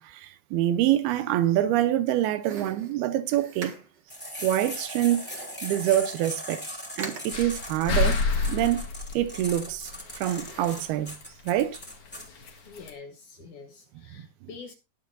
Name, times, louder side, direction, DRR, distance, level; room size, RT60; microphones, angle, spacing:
voice 1, 0.0-3.7 4.4-5.2 5.6-6.6 7.0-8.2 8.5-8.8 9.1-11.2 11.5-11.8, right 12 dB, 80° right, 2.5 m, -25 dB
sound 1, 2.4-4.1 5.1-5.7 6.1-6.2 6.4-6.7 7.0-7.5 8.3-8.8 9.2-10.1 10.4-10.9, right 5 dB, 55° right, 1.2 m, -43 dB
sound 2, 4.1-12.3, equal, 5° left, 1.9 m, -39 dB
sound 3, 7.3-10.8 11.1-11.2 11.5-12.5 12.8-12.9, left 4 dB, 50° left, 1.9 m, -29 dB
voice 2, 12.7-14.7, left 5 dB, 65° left, 2.1 m, -45 dB
19.5 x 7.2 x 2.6 m
omnidirectional pair, 4.7 m